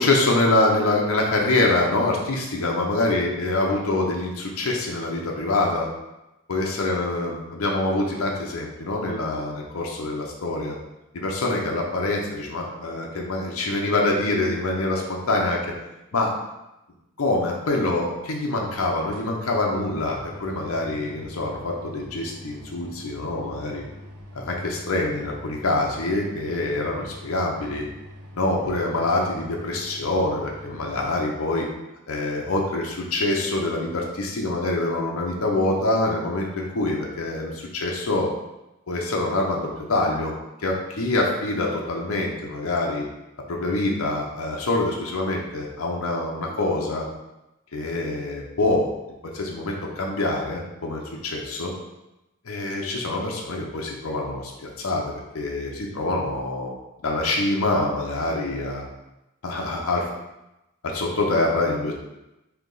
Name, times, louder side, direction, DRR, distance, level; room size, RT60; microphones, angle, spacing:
voice 1, 0.0-5.9 6.5-10.8 11.1-15.6 16.1-16.3 17.2-23.8 24.3-27.8 28.4-31.7 32.1-38.3 38.9-40.3 40.6-43.0 43.5-47.1 47.7-48.9 49.3-51.7 52.4-54.5 54.8-56.7 57.0-58.9 59.4-60.1 60.8-61.9, left 2 dB, 70° left, -1 dB, 0.7 m, -25 dB
sound 1, 19.1-31.1, left 1 dB, 80° right, 0.7 m, -44 dB
3.4 x 2.8 x 3.9 m, 0.94 s
head